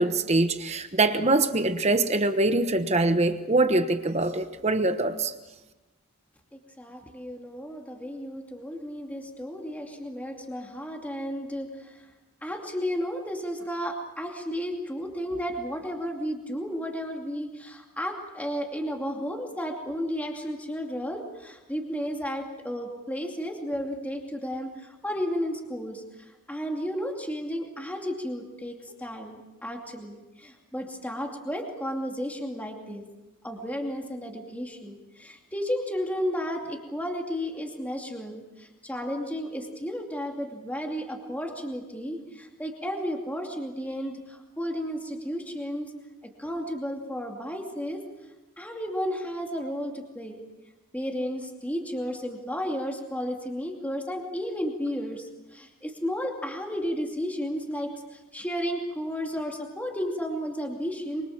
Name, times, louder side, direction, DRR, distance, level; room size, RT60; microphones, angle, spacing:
voice 1, 0.0-5.3, right 2 dB, 30° right, 9 dB, 1.1 m, -23 dB
voice 2, 6.5-12.1 12.4-33.0 33.4-45.9 46.2-48.0 48.6-50.4 50.9-61.3, equal, 5° left, 2 dB, 2.5 m, -33 dB
25.0 x 24.5 x 7.3 m, 1.1 s
head